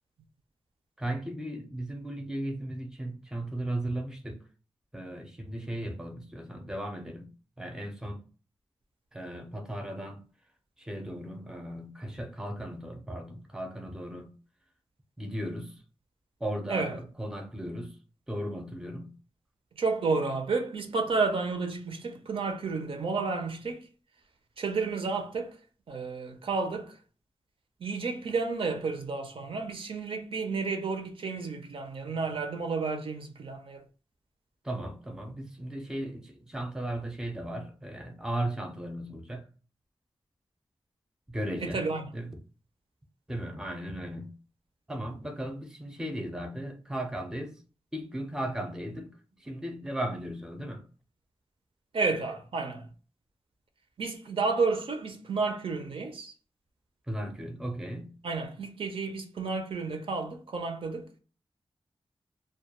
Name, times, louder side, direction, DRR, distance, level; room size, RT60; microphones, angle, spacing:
voice 1, 1.0-4.4 4.9-7.3 7.6-8.2 9.1-10.2 10.8-14.3 15.2-15.8 16.4-18.0 18.3-19.1 34.6-39.5 41.3-41.8 42.1-42.4 43.3-44.4 44.9-47.6 47.9-50.9 57.1-58.1, right 1 dB, 5° right, 0.5 m, -36 dB
voice 2, 19.8-23.8 24.6-25.6 25.9-27.0 27.8-33.8 41.6-42.0 51.9-52.9 54.0-56.3 58.2-61.1, right 4 dB, 65° right, 0.4 m, -31 dB
2.2 x 2.2 x 2.8 m
wide cardioid pair, 100°, 10 cm